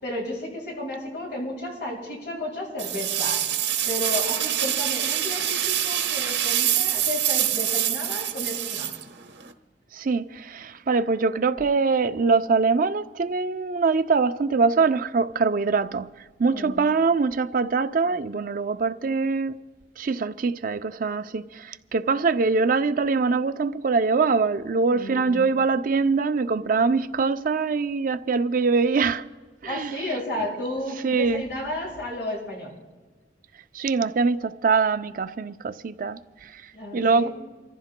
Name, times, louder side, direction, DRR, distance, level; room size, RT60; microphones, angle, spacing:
voice 1, 0.0-3.4 3.9-8.9 16.5-16.9 24.9-25.5 29.6-32.7 36.7-37.3, left 1 dB, 75° left, 5.9 m, -33 dB
sound 1, 2.8-9.5, right 11 dB, 85° right, 1.0 m, -25 dB
voice 2, 9.9-16.1 16.4-19.6 20.0-29.2 29.6-29.9 31.0-31.4 33.7-36.6 36.9-37.3, right 4 dB, 50° right, 0.5 m, -23 dB
28.5 x 14.5 x 2.2 m
head